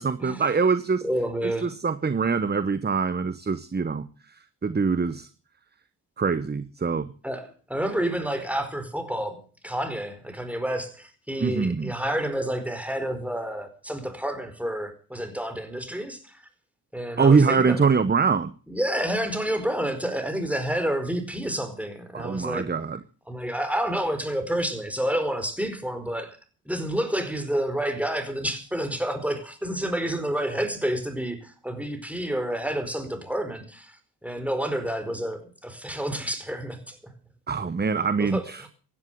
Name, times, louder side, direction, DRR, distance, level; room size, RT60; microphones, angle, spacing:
voice 1, 0.0-1.0 1.4-4.1 4.6-5.3 6.2-7.1 11.4-11.9 17.2-18.5 22.1-23.0 37.5-38.6, right 5 dB, 25° right, 0.9 m, -23 dB
voice 2, 1.0-1.7 7.2-16.4 16.9-17.9 18.7-22.7 23.3-26.4 26.6-34.0 34.2-37.1 38.2-38.7, right 1 dB, 5° right, 4.6 m, -29 dB
15.5 x 11.5 x 7.8 m
cardioid pair, 75°, 39 cm